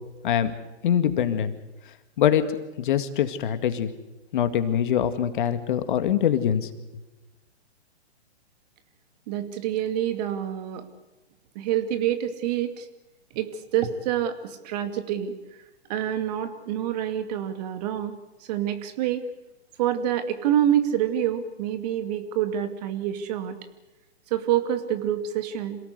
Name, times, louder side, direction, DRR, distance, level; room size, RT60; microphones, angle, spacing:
voice 1, 0.8-1.5 2.2-2.5 2.8-3.9 4.3-6.7, left 9 dB, 50° left, 10 dB, 2.1 m, -23 dB
voice 2, 9.3-10.9 11.5-12.9 13.3-15.3 15.9-19.2 19.8-23.6 24.3-25.8, right 10 dB, 40° right, 8 dB, 2.4 m, -27 dB
27.5 x 18.0 x 8.1 m, 1.0 s
hypercardioid pair, 130°, 33 cm